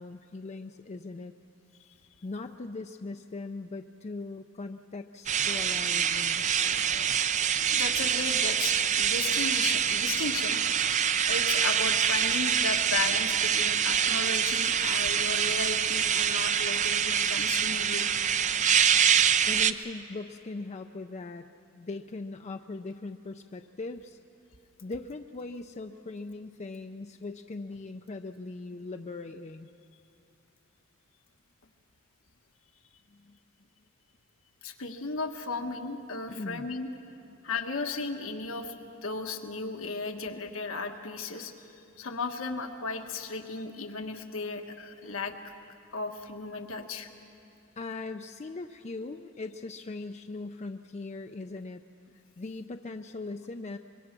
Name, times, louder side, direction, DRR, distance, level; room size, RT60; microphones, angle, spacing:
voice 1, 0.0-1.3 2.2-6.5 19.5-21.5 21.7-24.2 24.8-29.7 33.1-33.4 36.3-36.7 37.2-37.4 47.8-51.8 52.4-53.8, left 3 dB, 35° left, 6 dB, 0.5 m, -40 dB
sound 1, 5.3-19.7, right 8 dB, 35° right, 0.5 m, -25 dB
voice 2, 7.7-10.6 11.3-18.1 34.6-36.9 37.4-38.8 39.0-41.7 42.0-45.5 45.9-47.1, left 4 dB, 80° left, 5 dB, 1.4 m, -35 dB
24.5 x 22.5 x 6.0 m, 2.7 s
head